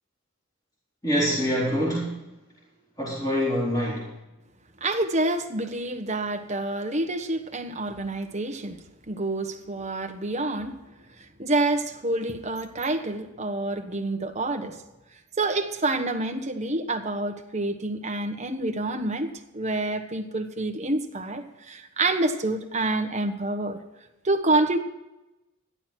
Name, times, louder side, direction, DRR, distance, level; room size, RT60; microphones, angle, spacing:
voice 1, 1.0-2.2 3.0-4.1, equal, 20° left, -7 dB, 4.3 m, -25 dB
voice 2, 4.8-8.8 9.1-10.7 11.4-14.8 15.4-19.3 19.5-23.8 24.2-24.8, right 2 dB, 35° right, 6 dB, 1.2 m, -27 dB
14.0 x 11.5 x 4.5 m, 0.99 s
head